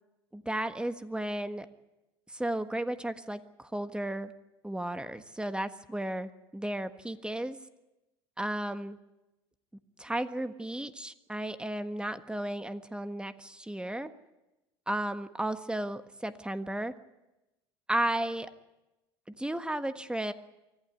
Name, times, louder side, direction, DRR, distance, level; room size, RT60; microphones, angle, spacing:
voice 1, 0.3-1.7 2.3-4.3 4.6-7.6 8.4-9.0 10.0-14.1 14.9-16.9 17.9-18.5 19.4-20.3, right 1 dB, 5° right, 10 dB, 1.5 m, -34 dB
24.5 x 15.0 x 9.5 m, 0.99 s
hypercardioid pair, 75°, 14 cm